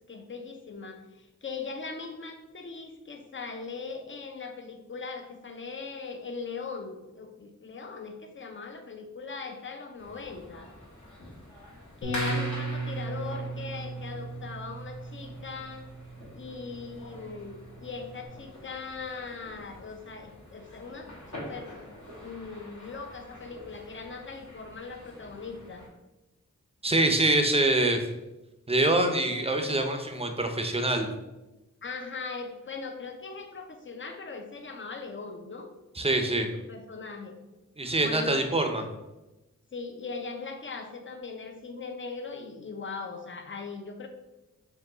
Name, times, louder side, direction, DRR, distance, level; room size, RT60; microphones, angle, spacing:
voice 1, 0.1-10.7 12.0-15.9 16.3-21.9 22.2-25.9 29.2-29.3 31.8-35.7 36.5-37.4 38.0-38.5 39.7-44.1, left 4 dB, 35° left, 5 dB, 0.6 m, -40 dB
sound 1, 10.0-25.9, left 1 dB, 60° left, 1.5 m, -45 dB
Bass guitar, 12.0-18.3, right 3 dB, 85° left, 0.9 m, -37 dB
voice 2, 26.8-28.0 28.7-31.1 36.0-36.5 37.8-38.9, right 2 dB, 20° right, 5 dB, 0.6 m, -25 dB
4.5 x 2.3 x 3.9 m, 1.0 s
wide cardioid pair, 50°, 32 cm